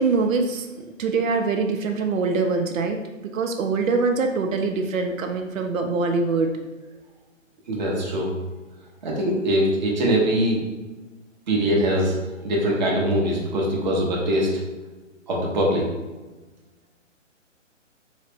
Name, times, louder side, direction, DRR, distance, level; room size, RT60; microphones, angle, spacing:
voice 1, 0.0-6.5, right 4 dB, 85° right, 4 dB, 0.6 m, -24 dB
voice 2, 7.7-8.3 9.0-10.6 11.5-12.1 12.4-14.5 15.3-15.9, equal, 35° right, -3 dB, 0.7 m, -22 dB
3.8 x 2.1 x 3.3 m, 1.2 s
hypercardioid pair, 160°, 39 cm